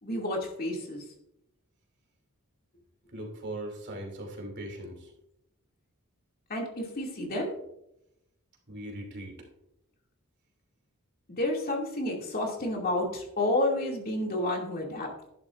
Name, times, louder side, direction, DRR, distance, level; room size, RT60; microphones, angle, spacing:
voice 1, 0.0-1.0 6.5-7.6 11.4-15.1, left 1 dB, 45° left, -1 dB, 2.5 m, -30 dB
voice 2, 3.1-5.1 8.7-9.5, right 1 dB, 55° right, 1 dB, 2.9 m, -39 dB
11.5 x 11.0 x 2.6 m, 0.82 s
head